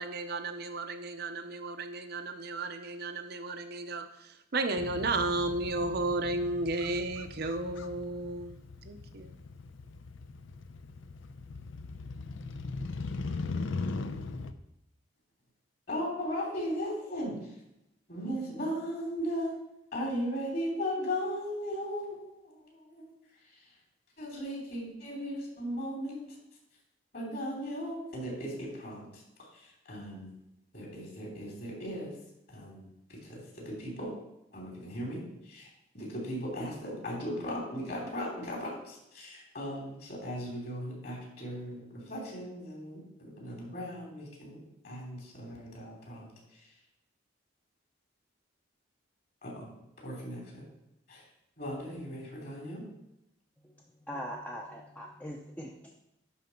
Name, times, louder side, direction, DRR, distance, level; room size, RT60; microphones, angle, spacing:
voice 1, 0.0-4.1 4.5-8.6 8.9-9.3, right 2 dB, 50° right, 7 dB, 0.6 m, -33 dB
Motorcycle, 4.8-14.5, left 3 dB, 75° left, 0.5 m, -40 dB
voice 2, 15.9-17.5 18.1-19.5 19.9-23.1 23.5-23.6 24.2-26.2 27.1-29.2 29.5-30.3 30.7-32.1 32.5-34.1 34.5-35.2 35.4-35.7 35.9-46.7 49.4-49.7 50.0-50.7 51.1-51.2 51.6-52.8, equal, 50° left, -2 dB, 3.2 m, -37 dB
voice 3, 54.1-55.9, equal, 10° left, -1 dB, 0.6 m, -41 dB
11.0 x 4.0 x 5.8 m, 0.86 s
head